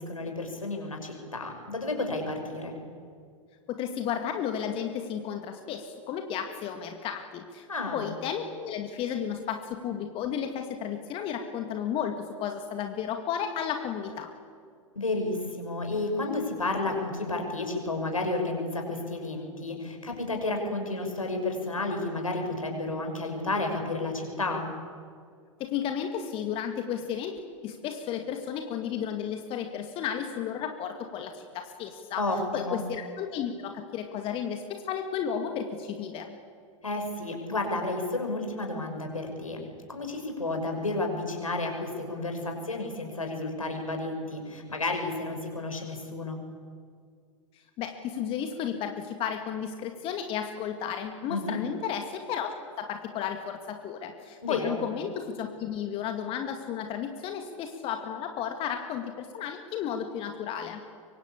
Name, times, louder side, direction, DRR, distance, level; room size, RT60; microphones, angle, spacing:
voice 1, 0.0-2.7 7.7-8.1 14.9-24.7 32.2-32.8 36.8-46.4 51.3-51.6 54.4-54.8, left 2 dB, 80° left, 3 dB, 6.0 m, -31 dB
voice 2, 3.7-7.7 7.9-14.3 25.6-32.2 32.5-36.4 47.8-60.8, left 8 dB, 30° left, 5 dB, 2.1 m, -33 dB
24.5 x 24.0 x 8.6 m, 2.1 s
figure-of-eight pair, 95°, 17 cm